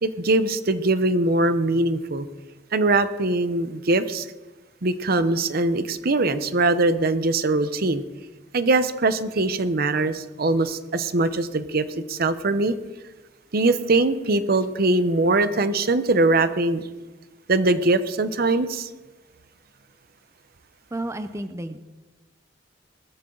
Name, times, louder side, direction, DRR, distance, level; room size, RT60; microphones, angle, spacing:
voice 1, 0.0-2.3 2.7-4.3 4.8-8.0 8.5-12.8 13.5-16.8 17.5-18.9, right 2 dB, 55° right, 12 dB, 0.8 m, -22 dB
voice 2, 20.9-21.8, right 1 dB, 15° right, 9 dB, 0.6 m, -31 dB
20.0 x 13.5 x 3.9 m, 1.2 s
head